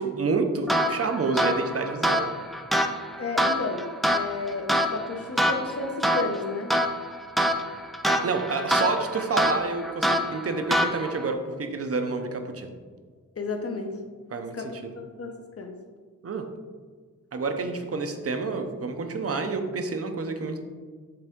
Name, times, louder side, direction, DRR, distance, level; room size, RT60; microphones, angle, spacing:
voice 1, 0.0-2.3 8.0-12.7 14.3-14.9 16.2-16.4 17.3-20.6, right 4 dB, 45° right, 6 dB, 0.6 m, -29 dB
sound 1, 0.7-11.3, equal, ahead, 0.3 m, -26 dB
voice 2, 3.2-6.7 13.4-14.0 14.5-15.8, left 3 dB, 45° left, 4 dB, 0.7 m, -32 dB
7.9 x 3.5 x 3.6 m, 1.5 s
wide cardioid pair, 115°, 33 cm